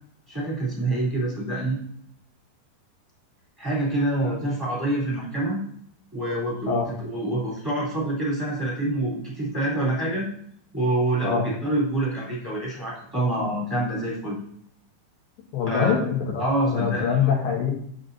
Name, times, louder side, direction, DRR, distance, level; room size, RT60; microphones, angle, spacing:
voice 1, 0.3-1.8 3.6-5.6 6.1-10.2 10.7-14.4 15.7-15.9 16.4-17.3, right 1 dB, 5° right, -6 dB, 3.0 m, -26 dB
voice 2, 15.5-17.7, left 7 dB, 90° left, 0 dB, 4.0 m, -24 dB
10.5 x 7.4 x 2.8 m, 0.68 s
omnidirectional pair, 4.8 m